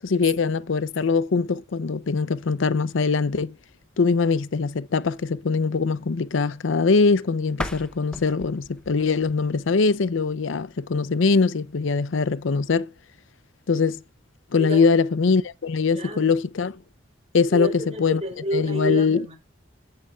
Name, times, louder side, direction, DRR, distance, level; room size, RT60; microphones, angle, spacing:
voice 1, 0.0-3.5 4.0-12.9 13.7-14.0 14.5-16.7 17.3-18.2 18.5-19.2, left 4 dB, 80° left, 0.6 m, -22 dB
sound 1, 7.5-10.4, left 1 dB, 5° left, 0.7 m, -38 dB
voice 2, 14.6-14.9 15.9-16.4 17.5-19.4, equal, 30° right, 3.4 m, -30 dB
16.0 x 6.8 x 2.3 m
head